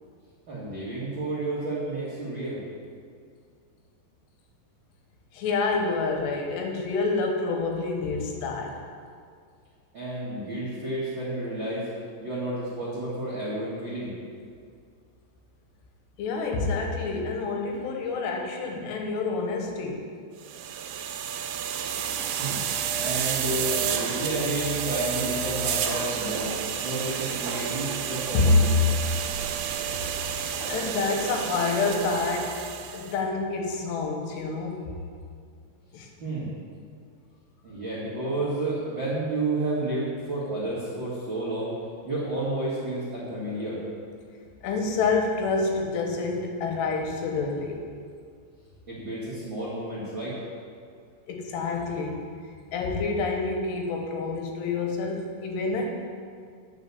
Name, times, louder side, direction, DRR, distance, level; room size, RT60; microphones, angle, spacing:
voice 1, 0.5-2.6 9.9-11.9 12.2-14.1 22.4-22.6 23.0-26.5 26.8-28.8 36.2-36.5 37.6-41.7 42.0-43.8 48.9-50.4, right 2 dB, 55° right, -8 dB, 1.3 m, -31 dB
voice 2, 5.3-8.7 16.2-20.1 28.3-28.6 30.7-32.6 32.9-34.9 35.9-36.1 44.6-47.8 51.3-52.3 52.7-55.9, left 3 dB, 85° left, 2 dB, 3.1 m, -27 dB
sound 1, 20.4-33.1, right 8 dB, 80° right, 2.6 m, -30 dB
9.4 x 6.0 x 6.9 m, 2.1 s
omnidirectional pair, 4.9 m